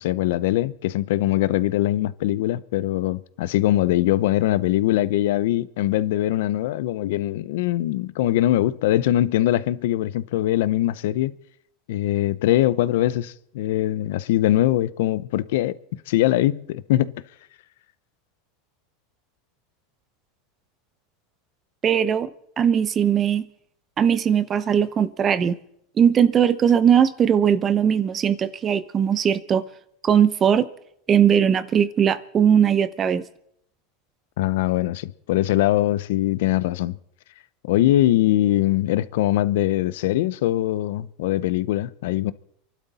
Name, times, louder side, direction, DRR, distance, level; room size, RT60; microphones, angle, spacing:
voice 1, 0.0-11.3 11.9-15.7 16.1-17.1 34.4-37.0 37.6-42.3, left 14 dB, 75° left, 0.7 m, -22 dB
voice 2, 21.8-22.3 22.6-23.5 24.0-25.6 26.0-29.6 30.0-30.7 31.1-33.2, right 8 dB, 25° right, 0.7 m, -19 dB
28.0 x 12.0 x 4.2 m
supercardioid pair, 150°, 0 cm